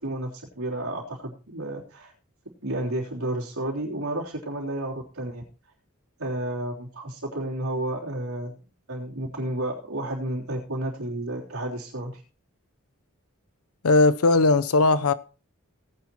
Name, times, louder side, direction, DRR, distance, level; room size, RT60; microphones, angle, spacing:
voice 1, 0.0-2.1 2.6-5.4 6.2-8.6 8.9-12.2, right 1 dB, 85° right, 3.5 m, -31 dB
voice 2, 13.8-15.1, left 3 dB, 85° left, 0.7 m, -18 dB
18.0 x 9.6 x 3.0 m
head